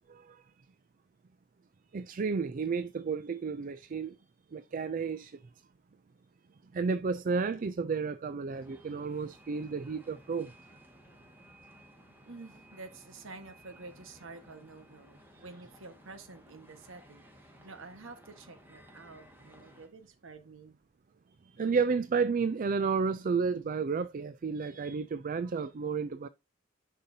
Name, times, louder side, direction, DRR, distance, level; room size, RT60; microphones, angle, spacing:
voice 1, 0.1-0.4 1.9-4.2 4.5-5.4 6.7-10.5 15.3-15.4 21.6-26.3, right 5 dB, 45° right, 0.4 m, -32 dB
sound 1, 8.5-19.9, equal, 10° right, 1.7 m, -57 dB
voice 2, 12.3-20.8, right 3 dB, 85° right, 1.4 m, -49 dB
10.5 x 5.5 x 2.7 m
head